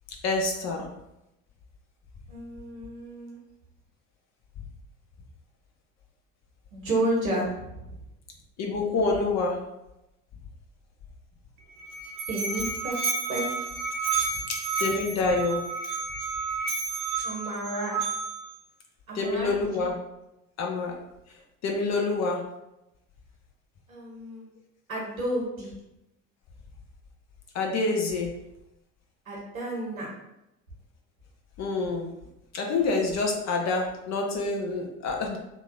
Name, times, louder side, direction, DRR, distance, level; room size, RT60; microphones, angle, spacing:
voice 1, 0.2-0.9 8.6-9.6 14.8-15.6 19.1-19.9 20.6-20.9 21.6-22.4 27.5-28.3 31.6-32.1 32.5-35.4, left 3 dB, 40° left, 1 dB, 0.8 m, -27 dB
voice 2, 2.3-3.4 6.7-8.0 12.3-13.0 13.3-13.5 14.3-14.4 17.2-18.0 19.1-19.5 19.8-19.9 23.9-24.5 24.9-25.7 29.3-30.1, right 1 dB, 85° right, -3 dB, 1.0 m, -31 dB
Musical instrument, 11.6-18.6, right 4 dB, 40° right, 0.7 m, -31 dB
2.9 x 2.3 x 3.8 m, 0.89 s
figure-of-eight pair, 55°, 40 cm